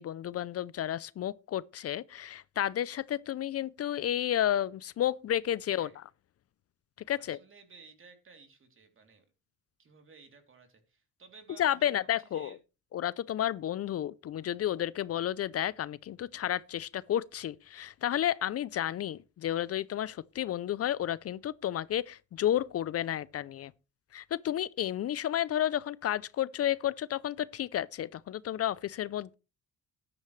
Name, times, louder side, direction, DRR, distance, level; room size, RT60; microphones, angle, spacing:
voice 1, 0.0-5.9 7.1-7.4 11.6-12.5 12.9-23.7 24.1-29.3, left 11 dB, 50° left, 0.5 m, -31 dB
voice 2, 5.6-6.0 7.2-9.3 9.8-12.6, right 5 dB, 45° right, 3.1 m, -56 dB
13.5 x 10.5 x 3.2 m
cardioid pair, 90°, 30 cm